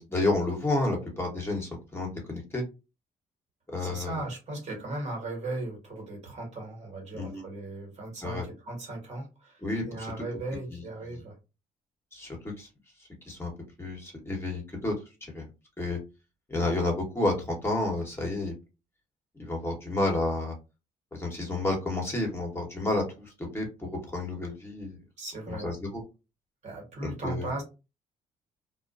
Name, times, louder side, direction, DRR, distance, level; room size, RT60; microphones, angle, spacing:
voice 1, 0.0-2.6 3.7-4.2 7.1-7.4 8.2-8.5 9.6-10.1 10.7-10.8 12.1-12.7 13.2-13.5 13.8-14.9 15.2-15.5 15.8-16.0 16.5-18.5 19.3-20.5 21.1-25.0 25.5-26.0 27.0-27.5, left 2 dB, 15° left, 0 dB, 1.0 m, -30 dB
voice 2, 3.8-9.6 9.9-11.3 25.2-25.7 26.6-27.6, right 2 dB, 55° right, 0 dB, 1.4 m, -37 dB
2.3 x 2.1 x 2.4 m, 0.28 s
cardioid pair, 80°, 14 cm